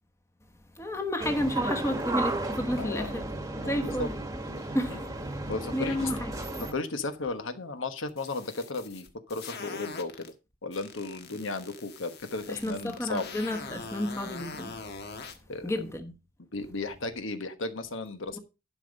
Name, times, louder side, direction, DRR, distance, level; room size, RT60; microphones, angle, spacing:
voice 1, 0.8-3.3 3.6-4.1 4.7-5.1 5.7-6.3 12.5-14.8 15.6-16.1 18.3-18.4, left 1 dB, 15° left, 1.1 m, -31 dB
sound 1, 1.2-6.7, right 2 dB, 15° right, 1.3 m, -34 dB
voice 2, 2.8-3.2 3.6-4.1 4.9-5.0 5.5-6.1 6.7-10.3 10.6-13.3 15.5-15.7 16.5-18.4, left 3 dB, 70° left, 1.2 m, -35 dB
sound 2, 8.1-10.3 10.7-15.4, left 4 dB, 55° left, 1.4 m, -43 dB
11.5 x 5.7 x 5.2 m
head